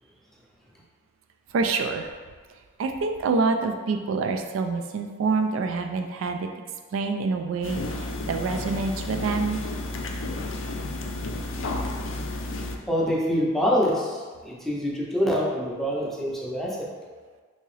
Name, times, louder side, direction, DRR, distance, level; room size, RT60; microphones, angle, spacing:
voice 1, 1.5-2.1 2.8-6.5 6.9-9.6, right 4 dB, 75° right, 5 dB, 0.3 m, -26 dB
sound 1, 7.6-12.8, left 2 dB, 65° left, 0.4 m, -32 dB
voice 2, 12.9-16.9, equal, ahead, -5 dB, 0.5 m, -25 dB
3.5 x 2.8 x 3.1 m, 1.5 s
head